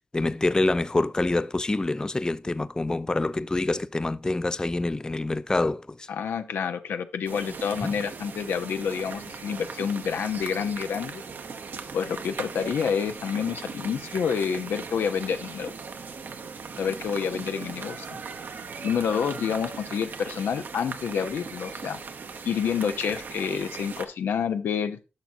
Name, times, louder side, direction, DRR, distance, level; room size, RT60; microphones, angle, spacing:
voice 1, 0.1-6.1 7.8-7.9, left 2 dB, 20° left, 0.4 m, -26 dB
voice 2, 6.1-11.2 11.9-15.7 16.8-18.1 18.8-22.0 22.4-25.0, left 7 dB, 85° left, 0.6 m, -28 dB
sound 1, 7.3-24.1, right 5 dB, 65° right, 0.8 m, -39 dB
10.5 x 6.0 x 2.6 m
cardioid pair, 60°, 4 cm